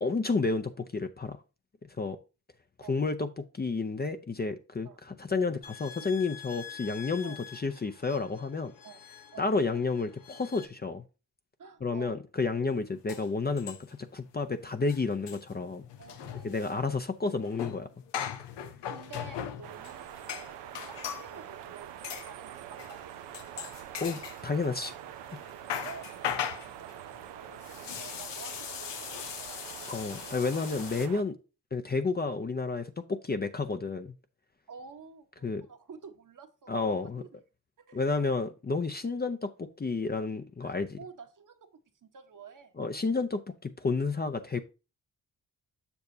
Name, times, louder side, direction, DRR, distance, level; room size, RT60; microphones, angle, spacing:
voice 1, 0.0-1.4 2.0-2.2 2.9-8.7 9.4-11.0 11.8-15.9 16.4-17.9 24.0-24.9 29.9-31.3 31.7-34.1 35.4-35.7 36.7-37.2 37.9-41.0 42.8-44.6, left 4 dB, 25° left, 0.6 m, -31 dB
sound 1, 5.6-10.7, left 8 dB, 55° left, 1.0 m, -47 dB
voice 2, 11.6-12.2 16.0-17.0 18.9-20.2 20.7-21.9 22.3-23.7 25.7-29.6 34.7-37.3 37.8-38.5 40.6-41.7 42.0-42.7, right 6 dB, 50° right, 1.1 m, -50 dB
sound 2, 12.7-12.8 13.1-14.1 14.4-14.5 14.8-21.3 22.0-22.3 22.8-23.0 23.3-25.0 25.3-31.1, left 9 dB, 80° left, 0.8 m, -39 dB
sound 3, 19.6-31.2, right 10 dB, 90° right, 0.6 m, -45 dB
6.9 x 6.6 x 2.7 m
supercardioid pair, 50°, 41 cm